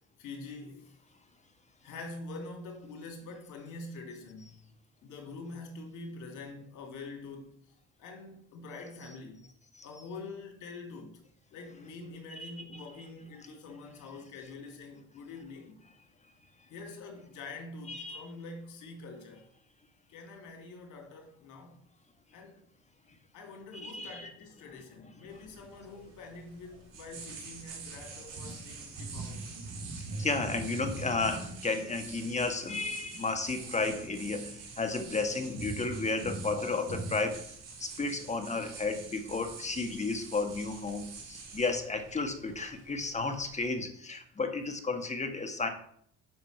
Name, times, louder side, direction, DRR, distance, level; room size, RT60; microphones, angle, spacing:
voice 1, 0.2-0.9 1.8-4.6 5.0-7.6 8.0-9.4 9.8-11.2 11.5-15.8 16.7-19.5 20.1-21.8 22.3-22.6 23.3-29.5, left 3 dB, 70° left, 3.0 m, -45 dB
voice 2, 12.3-12.8 17.9-18.2 23.7-24.3 30.1-37.4 37.8-45.7, left 3 dB, 20° left, 1.6 m, -33 dB
sound 1, 25.3-43.7, right 3 dB, 75° right, 4.0 m, -44 dB
7.8 x 6.1 x 6.6 m
supercardioid pair, 90°, 32 cm